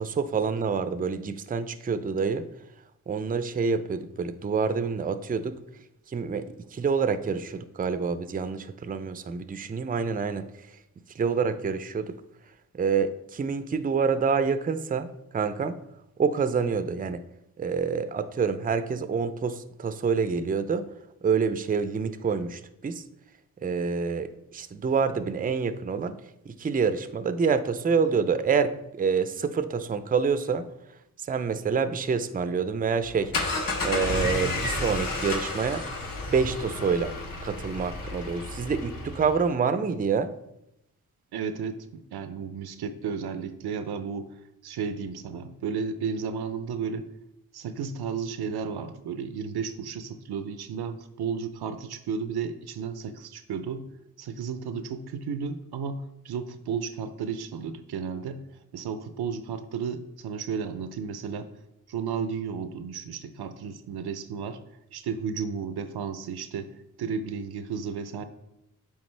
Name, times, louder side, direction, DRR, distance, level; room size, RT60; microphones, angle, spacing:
voice 1, 0.0-2.5 3.1-5.6 6.1-10.5 11.2-12.2 12.7-15.8 16.2-17.3 17.6-20.9 21.2-23.0 23.6-26.2 26.5-30.7 31.2-33.3 33.8-35.9 36.3-37.2 37.4-40.3, right 5 dB, 25° right, 12 dB, 0.4 m, -27 dB
sound 1, 33.0-39.4, left 2 dB, 60° left, 1.1 m, -31 dB
voice 2, 41.3-44.3 44.6-47.1 47.5-53.9 54.2-58.4 58.7-61.5 61.9-64.6 64.9-66.7 67.0-68.2, right 6 dB, 80° right, 11 dB, 0.5 m, -33 dB
8.8 x 3.5 x 3.3 m, 0.84 s
cardioid pair, 45°, 38 cm